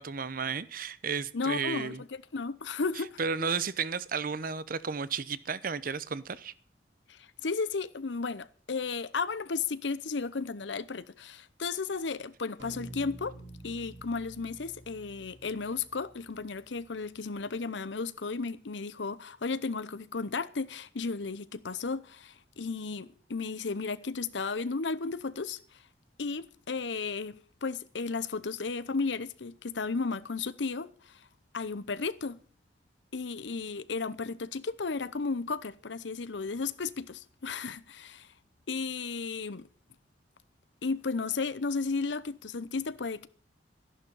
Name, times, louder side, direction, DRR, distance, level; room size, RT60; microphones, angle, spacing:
voice 1, 0.0-2.0 3.2-6.5, right 5 dB, 50° right, 0.7 m, -33 dB
voice 2, 1.3-1.9 2.3-3.2 7.1-13.3 13.6-25.6 26.2-31.2 31.5-32.4 33.1-38.3 38.7-39.7 40.8-43.3, left 4 dB, 80° left, 0.8 m, -34 dB
sound 1, 12.6-17.2, right 1 dB, 75° right, 4.3 m, -49 dB
13.5 x 11.0 x 5.5 m
head